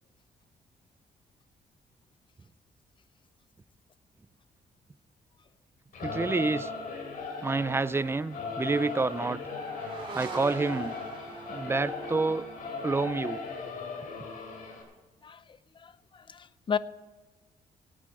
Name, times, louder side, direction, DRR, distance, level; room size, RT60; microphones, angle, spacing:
Singing / Musical instrument, 5.9-14.8, left 4 dB, 75° left, 3.0 m, -38 dB
voice 1, 6.0-6.7 7.4-9.4 10.1-10.9 11.5-12.4 12.8-13.4, right 3 dB, 15° right, 17 dB, 0.4 m, -28 dB
sound 1, 8.7-13.7, right 3 dB, 40° right, 2.5 m, -44 dB
voice 2, 15.8-16.8, left 7 dB, 35° left, 17 dB, 0.5 m, -34 dB
19.0 x 8.6 x 4.7 m, 1.3 s
cardioid pair, 105°, 14 cm